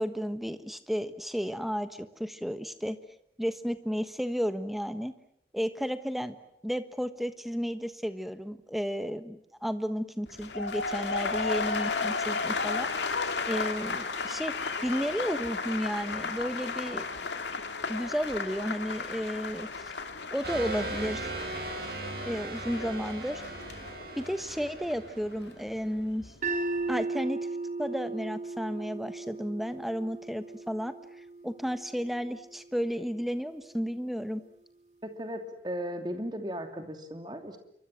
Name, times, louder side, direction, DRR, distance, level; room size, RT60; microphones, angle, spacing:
voice 1, 0.0-3.0 3.4-5.1 5.5-6.4 6.6-12.9 13.4-14.5 14.8-17.1 17.9-19.8 20.3-21.3 22.2-23.4 24.2-26.3 26.9-27.4 27.8-30.9 31.4-34.4, equal, ahead, 10 dB, 1.3 m, -32 dB
sound 1, 10.3-26.3 26.6-27.1, left 4 dB, 90° left, 2.5 m, -34 dB
sound 2, 20.4-25.8, right 2 dB, 60° right, 5.5 m, -38 dB
sound 3, 26.4-32.6, right 3 dB, 40° right, 3.1 m, -36 dB
voice 2, 35.0-37.6, equal, 25° right, 6 dB, 2.9 m, -36 dB
28.0 x 24.0 x 7.6 m, 0.74 s
head